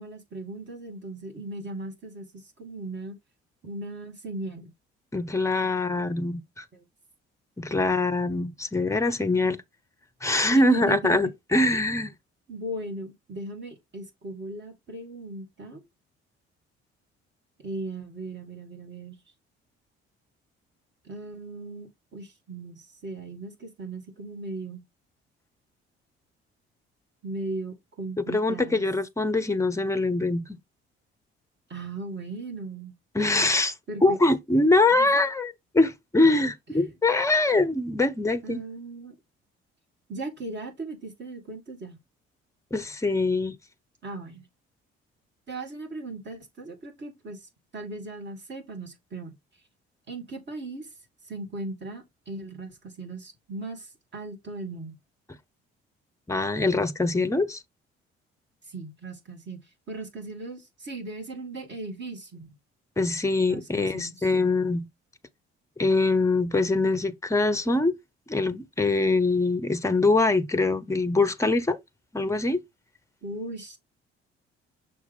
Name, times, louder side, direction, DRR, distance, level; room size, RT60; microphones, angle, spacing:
voice 1, 0.0-3.2 3.6-4.7 6.7-6.9 10.5-11.2 12.5-15.8 17.6-19.2 21.0-24.8 27.2-28.9 31.7-33.0 33.9-34.2 34.9-35.1 36.7-36.9 38.4-39.1 40.1-42.0 44.0-44.5 45.5-49.3 50.1-50.9 51.2-55.0 58.7-62.5 63.5-64.3 73.2-73.8, right 2 dB, 35° right, 2.3 m, -38 dB
voice 2, 5.1-6.6 7.6-9.6 10.2-12.1 28.3-30.6 33.1-33.7 34.0-38.6 42.7-43.5 56.3-57.6 63.0-64.9 65.8-68.0 68.3-71.8 72.1-72.6, left 2 dB, 10° left, 0.8 m, -23 dB
6.2 x 4.5 x 3.5 m
figure-of-eight pair, 50°, 32 cm